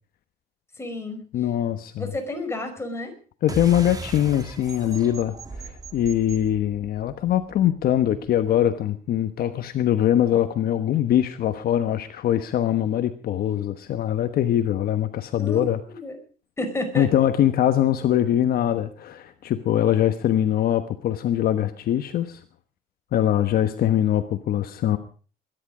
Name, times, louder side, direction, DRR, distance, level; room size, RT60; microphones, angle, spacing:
voice 1, 0.8-1.2 2.0-3.1 15.4-16.2 16.6-17.1, left 2 dB, 15° left, 4 dB, 5.1 m, -31 dB
voice 2, 1.3-2.1 3.4-15.8 17.0-22.4 23.1-25.0, left 11 dB, 65° left, 9 dB, 1.2 m, -22 dB
sound 1, 3.5-8.4, right 3 dB, 20° right, 2.0 m, -38 dB
21.0 x 11.0 x 5.0 m, 0.40 s
cardioid pair, 110°, 17 cm